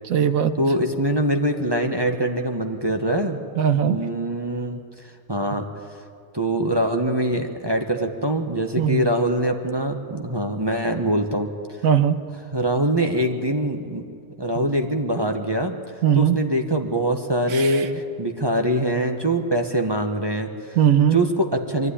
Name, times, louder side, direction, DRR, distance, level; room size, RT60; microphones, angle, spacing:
voice 1, 0.0-0.5 3.6-4.0 8.8-9.0 11.8-12.2 16.0-16.4 17.5-17.9 20.8-21.2, right 9 dB, 70° right, 10 dB, 1.3 m, -19 dB
voice 2, 0.6-3.4 3.8-4.8 5.3-5.7 6.3-11.5 12.5-14.0 14.4-15.7 16.1-20.8 21.1-21.9, right 1 dB, 20° right, 4 dB, 1.0 m, -23 dB
23.0 x 12.0 x 9.9 m, 2.3 s
omnidirectional pair, 1.5 m